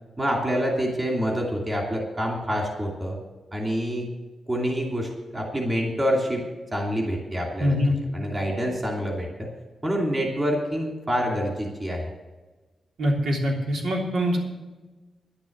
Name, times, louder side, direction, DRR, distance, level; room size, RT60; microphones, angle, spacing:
voice 1, 0.2-3.2 3.5-4.1 4.5-6.4 6.7-9.5 9.8-12.0, equal, 15° right, -1 dB, 2.7 m, -27 dB
voice 2, 7.6-8.0 13.0-14.4, equal, 80° right, -1 dB, 3.2 m, -23 dB
11.0 x 11.0 x 6.6 m, 1.2 s
wide cardioid pair, 175°, 0 cm